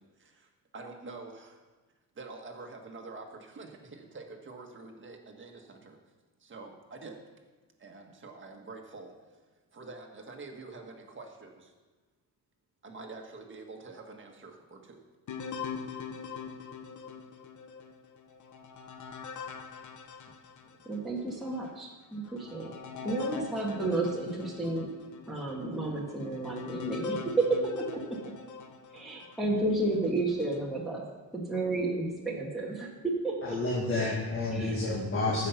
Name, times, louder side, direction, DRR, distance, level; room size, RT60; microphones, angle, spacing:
voice 1, 0.0-1.6 2.1-6.0 6.4-7.2 7.8-9.2 9.7-11.7 12.8-15.0, right 3 dB, 30° right, 2 dB, 1.5 m, -46 dB
sound 1, 15.3-21.0 21.6-21.7 22.2-29.4 30.0-30.6, left 5 dB, 50° left, 0.9 m, -41 dB
voice 2, 20.8-22.7 23.0-24.9 25.3-27.2 27.9-28.2 28.9-31.0 31.3-33.6 34.5-34.9, right 2 dB, ahead, -4 dB, 1.5 m, -32 dB
voice 3, 33.4-35.5, left 2 dB, 35° left, -2 dB, 1.6 m, -30 dB
14.5 x 5.6 x 5.8 m, 1.3 s
cardioid pair, 145°, 37 cm